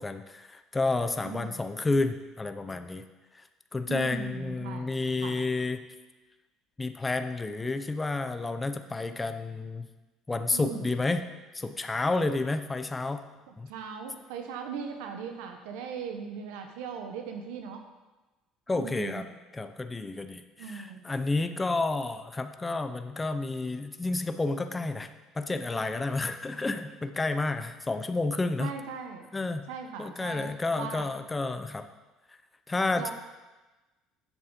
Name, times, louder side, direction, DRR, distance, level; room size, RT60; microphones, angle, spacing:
voice 1, 0.0-3.0 3.3-3.4 3.7-5.8 6.8-9.9 10.3-11.3 11.5-13.2 13.6-13.7 18.7-19.2 19.5-28.7 29.3-29.7 30.0-31.9 32.7-33.1, left 3 dB, 15° left, 9 dB, 0.6 m, -30 dB
voice 2, 1.2-1.6 3.9-4.9 5.2-5.4 10.5-10.9 13.5-17.8 18.7-19.3 20.6-21.0 28.6-29.3 29.7-31.1 33.0-33.1, right 6 dB, 85° right, 5 dB, 0.9 m, -39 dB
7.4 x 7.1 x 5.3 m, 1.1 s
supercardioid pair, 105°, 0 cm